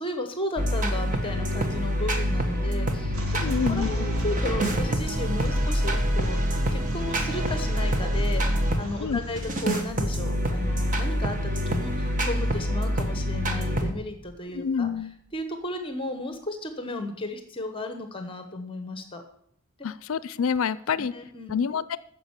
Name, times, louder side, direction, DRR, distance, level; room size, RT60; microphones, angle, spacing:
voice 1, 0.0-3.4 3.7-14.9 15.3-19.2 21.0-21.5, left 1 dB, 25° left, 7 dB, 1.0 m, -34 dB
sound 1, 0.6-8.8 9.4-13.9, equal, 35° right, 1.4 m, -26 dB
sound 2, 3.1-14.4, equal, 80° right, 1.8 m, -37 dB
voice 2, 3.4-4.1 9.0-9.2 14.5-15.1 19.8-21.1 21.5-22.0, left 6 dB, 70° left, 17 dB, 0.5 m, -27 dB
10.0 x 7.2 x 8.1 m, 0.70 s
head